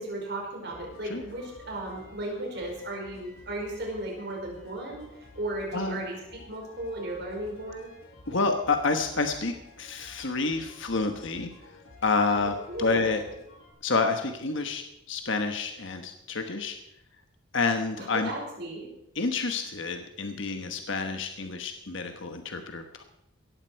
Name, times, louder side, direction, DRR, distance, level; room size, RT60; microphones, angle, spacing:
voice 1, 0.0-5.0 5.3-7.9 12.2-13.2 18.0-18.9, right 1 dB, 50° right, 0 dB, 5.2 m, -35 dB
sound 1, 0.7-13.7, left 2 dB, 80° left, 3.9 m, -52 dB
voice 2, 5.7-6.0 8.3-11.5 12.0-13.2 13.8-16.8 17.5-18.3 19.1-23.0, left 4 dB, 65° left, 6 dB, 1.2 m, -29 dB
17.5 x 14.5 x 4.6 m, 0.84 s
head